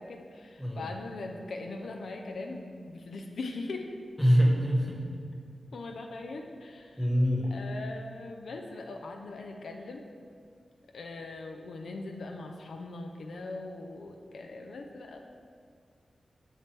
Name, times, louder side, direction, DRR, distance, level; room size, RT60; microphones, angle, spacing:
voice 1, 0.0-3.9 5.7-7.1 7.4-10.1 10.9-15.2, left 3 dB, 85° left, 3 dB, 0.5 m, -40 dB
voice 2, 4.2-5.0 7.0-7.5, equal, 5° left, -1 dB, 1.2 m, -24 dB
6.3 x 6.0 x 3.3 m, 2.1 s
cardioid pair, 65°, 0 cm